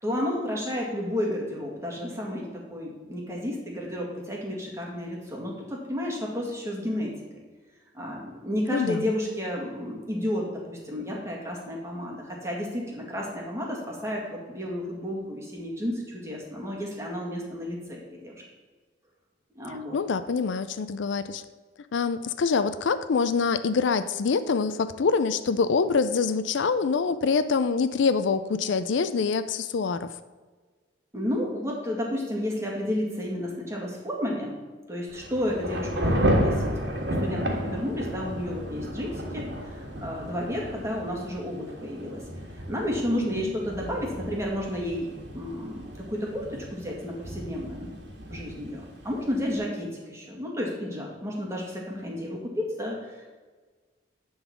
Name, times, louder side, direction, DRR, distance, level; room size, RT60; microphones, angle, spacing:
voice 1, 0.0-7.4 7.9-18.4 19.6-20.0 31.1-34.5 34.9-36.9 37.2-42.2 42.5-47.9 48.3-53.3, left 1 dB, 15° right, -2 dB, 1.9 m, -32 dB
voice 2, 8.7-9.1 19.9-21.4 21.9-30.1 43.1-43.5, left 5 dB, 75° left, 12 dB, 0.4 m, -25 dB
Thunder / Rain, 35.1-49.5, equal, 60° right, 1.6 m, -32 dB
10.5 x 3.9 x 7.2 m, 1.4 s
head